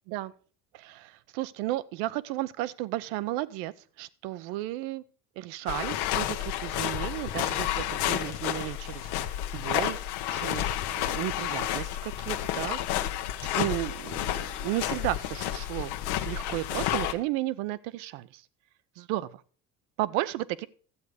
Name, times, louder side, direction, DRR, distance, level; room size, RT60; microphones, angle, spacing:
voice 1, 0.7-3.7 4.0-5.0 5.4-9.1 9.5-12.8 13.5-15.9 16.3-18.4 19.0-19.4 20.0-20.7, right 16 dB, 80° right, 17 dB, 0.7 m, -33 dB
sound 1, 5.7-17.1, left 12 dB, 75° left, 1.1 m, -31 dB
12.5 x 8.2 x 4.9 m, 0.42 s
cardioid pair, 130°, 31 cm